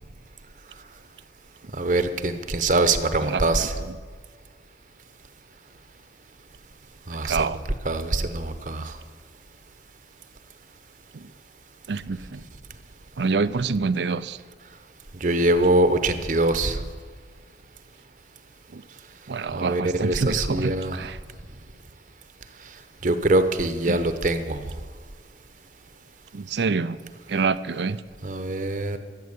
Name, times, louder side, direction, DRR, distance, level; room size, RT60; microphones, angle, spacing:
voice 1, 1.8-3.7 7.1-7.5 7.8-8.9 15.2-16.8 19.5-21.1 23.0-24.6 28.2-29.0, right 2 dB, 45° right, 9 dB, 0.9 m, -23 dB
voice 2, 3.2-3.9 7.2-7.6 11.1-11.3 11.9-12.4 13.2-14.4 18.7-18.8 19.3-21.2 23.9-24.0 26.3-27.0 27.3-28.0, right 4 dB, 75° right, 15 dB, 0.5 m, -27 dB
13.5 x 7.6 x 9.7 m, 1.5 s
head